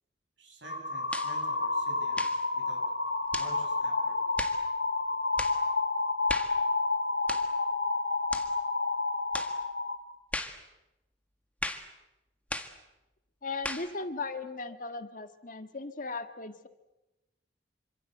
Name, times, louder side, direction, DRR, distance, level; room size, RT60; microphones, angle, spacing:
voice 1, 0.4-2.9 3.4-4.2, right 1 dB, 85° right, 3 dB, 8.0 m, -49 dB
sound 1, 0.6-10.0, left 3 dB, 60° left, 3.0 m, -30 dB
sound 2, 1.1-1.4 2.1-2.4 3.3-3.6 4.4-4.6 5.4-5.6 6.3-6.6 7.3-7.5 8.3-8.5 9.3-9.6 10.3-10.6 11.6-11.9 12.5-12.8 13.6-13.9, left 2 dB, 10° left, 1.8 m, -36 dB
voice 2, 13.4-16.7, left 3 dB, 45° left, 9 dB, 1.7 m, -37 dB
27.0 x 25.5 x 8.1 m, 0.99 s
head